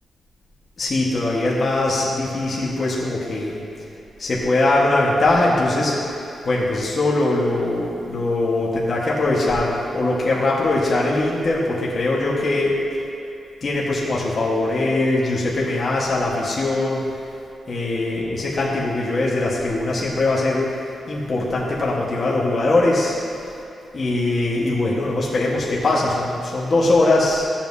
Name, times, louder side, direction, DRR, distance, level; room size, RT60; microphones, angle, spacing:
voice 1, 0.8-3.6 4.2-6.1 6.4-12.8 13.6-17.0 17.7-20.7 21.1-23.1 23.9-27.5, left 2 dB, 40° left, -5 dB, 1.3 m, -21 dB
14.5 x 7.3 x 2.7 m, 2.7 s
wide cardioid pair, 150°, 0 cm